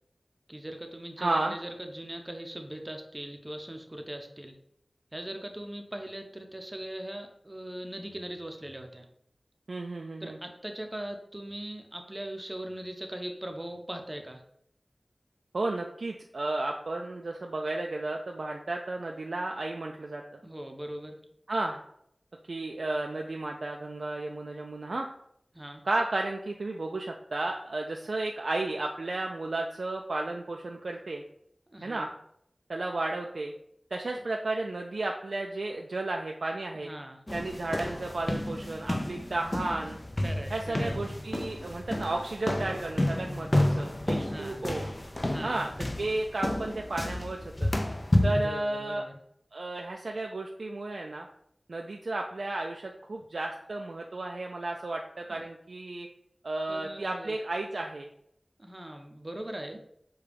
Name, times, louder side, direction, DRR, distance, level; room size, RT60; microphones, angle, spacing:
voice 1, 0.5-4.6 5.1-9.1 10.2-14.4 20.4-21.2 25.5-25.8 31.7-32.1 36.8-37.2 40.2-40.9 44.2-44.6 45.3-45.6 48.2-49.1 55.3-55.4 56.7-57.4 58.6-59.8, right 1 dB, 25° right, 4 dB, 0.6 m, -40 dB
voice 2, 1.2-1.5 9.7-10.4 15.5-20.4 21.5-21.8 22.5-25.1 25.8-31.2 31.8-32.1 32.7-33.5 33.9-36.9 37.3-40.0 40.5-44.9 45.4-45.7 46.0-47.7 48.2-49.0 49.5-51.3 51.7-56.1 56.4-58.1, right 2 dB, 85° right, 1 dB, 0.3 m, -33 dB
sound 1, 37.3-48.5, left 1 dB, 35° left, 0.4 m, -30 dB
6.6 x 2.3 x 3.3 m, 0.71 s
wide cardioid pair, 45°, 0 cm